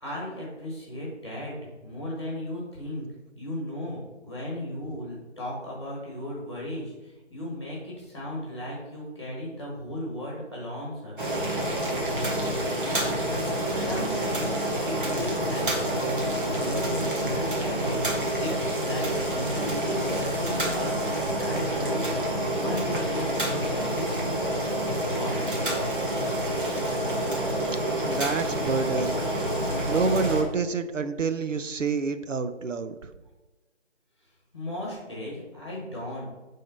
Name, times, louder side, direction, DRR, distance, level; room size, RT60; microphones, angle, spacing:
voice 1, 0.0-3.0 3.3-11.2 13.7-14.6 14.8-16.1 16.5-21.1 21.4-22.1 22.5-24.3 24.8-25.6 34.5-36.2, left 1 dB, 20° left, -4 dB, 1.6 m, -35 dB
Boiling, 11.2-30.4, right 1 dB, 45° right, 1.5 m, -28 dB
voice 2, 13.0-13.4 27.7-29.2 29.9-33.1, right 5 dB, 85° right, 10 dB, 0.7 m, -28 dB
5.4 x 3.7 x 5.3 m, 1.1 s
figure-of-eight pair, 175°, 37 cm